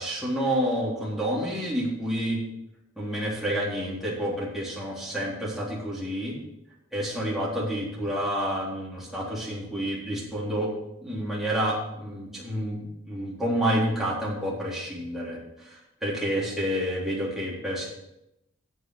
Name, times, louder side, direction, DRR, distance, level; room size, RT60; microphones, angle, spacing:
voice 1, 0.0-2.4 3.0-6.4 6.9-10.7 11.0-17.9, equal, ahead, -6 dB, 3.6 m, -29 dB
9.8 x 8.0 x 6.4 m, 0.86 s
head